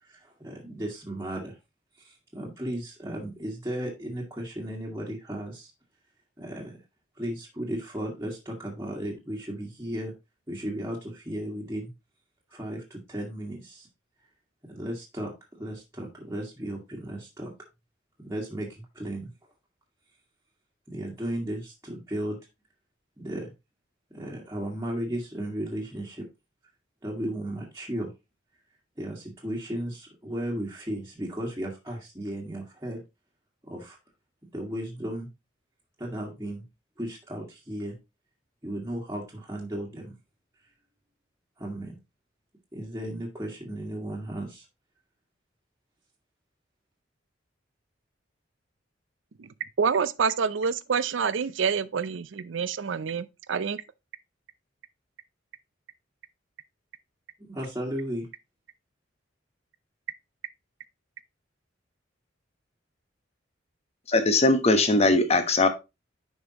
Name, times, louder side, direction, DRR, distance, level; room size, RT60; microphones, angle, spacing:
voice 1, 0.0-1.6 2.0-5.7 6.4-6.8 7.1-10.1 10.5-11.9 12.5-13.9 14.6-17.5 18.2-19.3 20.9-22.4 23.2-23.5 24.1-26.3 27.0-28.1 29.0-33.0 33.6-34.0 34.5-35.3 36.0-36.6 37.0-37.9 38.6-40.1 41.6-42.0 42.7-44.6 57.4-58.3, right 1 dB, 15° right, 1.8 m, -35 dB
voice 2, 49.8-53.8, right 6 dB, 75° right, 0.5 m, -27 dB
voice 3, 64.1-65.7, left 2 dB, 35° left, 1.1 m, -20 dB
9.8 x 5.4 x 2.9 m
head